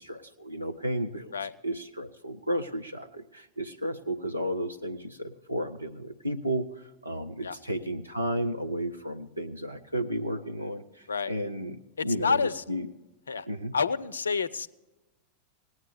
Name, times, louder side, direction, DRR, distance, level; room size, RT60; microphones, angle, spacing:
voice 1, 0.0-1.3 1.6-12.4 12.7-12.9 13.5-13.7, equal, 85° right, 6 dB, 0.6 m, -33 dB
voice 2, 12.0-12.6 13.3-13.5 13.7-14.7, left 5 dB, 70° left, 19 dB, 0.5 m, -28 dB
18.0 x 9.5 x 6.9 m, 1.0 s
figure-of-eight pair, 90°, 0 cm